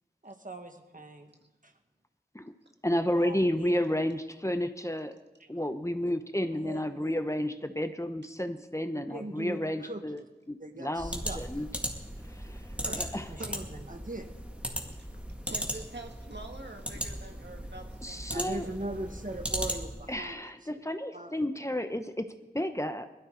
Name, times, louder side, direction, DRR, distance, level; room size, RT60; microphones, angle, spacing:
voice 1, 0.2-1.3 1.6-1.7 3.2-3.7 5.4-5.5 6.5-7.2 8.9-10.0 10.6-11.6 12.9-15.3 18.3-20.8 21.1-21.3, right 1 dB, 50° right, 5 dB, 1.6 m, -41 dB
voice 2, 2.8-5.1 5.5-10.2 10.5-11.7 12.3-12.6 13.0-13.2 18.0-18.7 20.1-23.1, left 1 dB, 15° left, 8 dB, 0.8 m, -31 dB
sound 1, 11.0-20.1, equal, 5° right, 2.2 m, -37 dB
voice 3, 12.8-13.6 15.5-19.1, right 3 dB, 75° right, 2 dB, 1.8 m, -46 dB
21.0 x 13.0 x 3.9 m, 1.1 s
wide cardioid pair, 40°, 18 cm